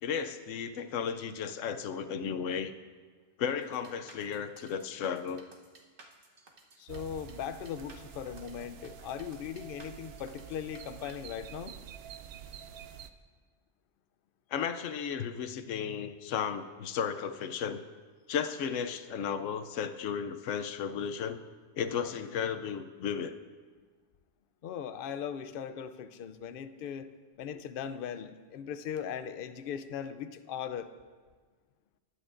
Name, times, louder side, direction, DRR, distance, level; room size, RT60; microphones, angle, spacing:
voice 1, 0.0-2.7 3.4-5.4 14.5-17.8 18.3-21.4 21.7-23.3, left 7 dB, 85° left, 9 dB, 1.0 m, -34 dB
sound 1, 3.6-11.1, right 3 dB, 50° right, 1.2 m, -57 dB
voice 2, 6.8-11.8 24.6-27.1 27.4-30.9, left 8 dB, 60° left, 11 dB, 0.6 m, -39 dB
sound 2, 6.9-13.1, right 8 dB, 65° right, 0.7 m, -48 dB
20.0 x 9.6 x 2.5 m, 1.5 s
omnidirectional pair, 1.3 m